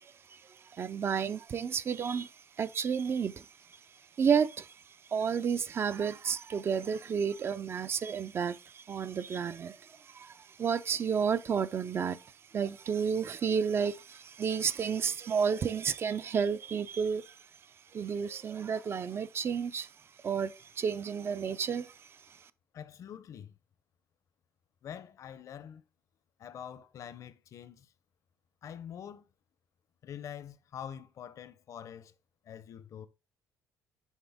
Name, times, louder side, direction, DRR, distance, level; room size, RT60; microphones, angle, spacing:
voice 1, 0.0-3.5 4.2-17.4 17.9-19.9 20.2-22.0 22.3-22.5, right 6 dB, 40° right, 0.5 m, -32 dB
voice 2, 22.7-23.6 24.8-25.8 26.4-27.9 28.6-29.3 30.0-32.1 32.4-33.1, left 9 dB, 55° left, 0.7 m, -45 dB
7.3 x 4.4 x 3.5 m
cardioid pair, 110°, 7 cm